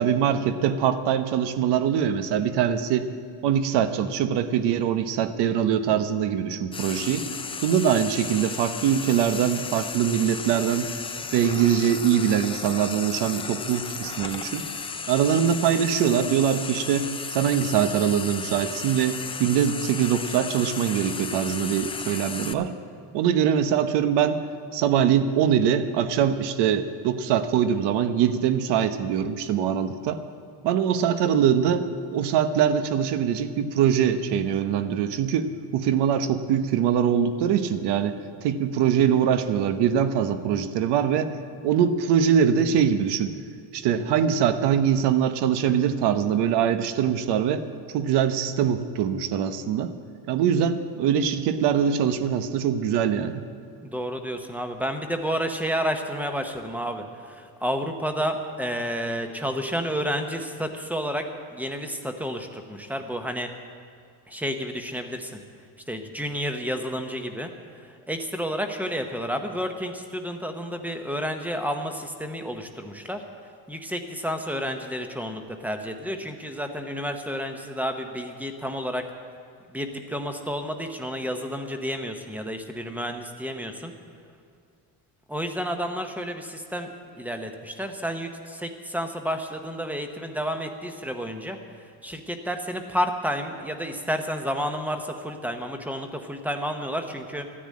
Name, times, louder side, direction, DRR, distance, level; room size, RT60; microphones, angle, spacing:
voice 1, 0.0-3.1 3.4-7.3 7.6-10.9 11.3-14.6 15.1-22.7 23.1-24.4 24.7-30.2 30.6-41.3 41.6-43.3 43.7-47.6 47.9-49.9 50.3-53.4, right 8 dB, 90° right, 10 dB, 1.0 m, -23 dB
Frying (food), 6.7-22.5, left 5 dB, 15° left, 0.3 m, -34 dB
voice 2, 53.8-61.3 61.5-63.5 64.3-65.4 65.9-67.5 68.1-73.2 73.7-79.0 79.7-83.9 85.3-97.6, equal, 5° right, 5 dB, 0.8 m, -30 dB
13.5 x 10.0 x 8.5 m, 2.3 s
cardioid pair, 170°, 40 cm